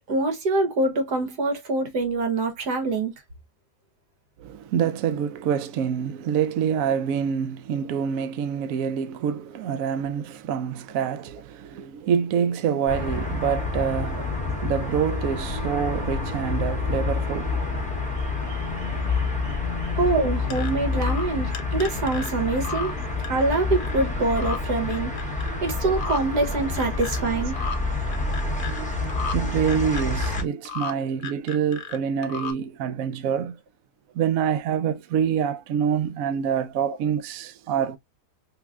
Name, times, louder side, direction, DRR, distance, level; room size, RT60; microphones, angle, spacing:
voice 1, 0.1-3.1 19.9-23.0 23.3-25.1 25.4-27.5 36.9-37.0, right 3 dB, 90° right, 1.7 m, -25 dB
voice 2, 4.7-14.2 14.6-17.6 28.7-33.5 34.2-38.0, right 8 dB, 70° right, 0.9 m, -26 dB
sound 1, 12.9-30.4, left 3 dB, 5° left, 0.7 m, -28 dB
sound 2, 20.5-20.7 21.0-21.3 21.5-22.3 22.6-22.9 23.2-24.0 24.3-24.6 24.9-25.6 25.9-26.2 26.5-27.2 27.5-27.8 28.1-28.8 29.1-29.4 29.7-30.9 31.2-32.5, left 6 dB, 60° left, 0.7 m, -34 dB
3.4 x 3.3 x 2.4 m
omnidirectional pair, 1.7 m